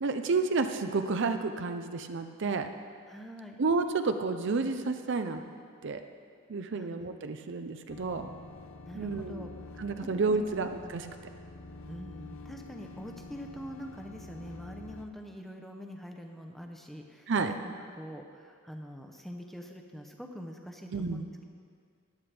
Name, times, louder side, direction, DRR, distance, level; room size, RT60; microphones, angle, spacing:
voice 1, 0.0-2.7 3.6-5.4 5.8-6.0 6.5-8.2 9.0-9.4 9.8-11.1 17.3-17.5 20.9-21.2, right 4 dB, 55° right, 8 dB, 0.5 m, -30 dB
voice 2, 3.1-3.6 6.7-6.9 8.9-9.5 9.8-9.9 10.3-10.6 11.9-21.4, equal, ahead, 3 dB, 0.7 m, -44 dB
sound 1, 7.9-15.1, left 2 dB, 70° left, 0.8 m, -47 dB
14.5 x 10.5 x 3.4 m, 2.1 s
head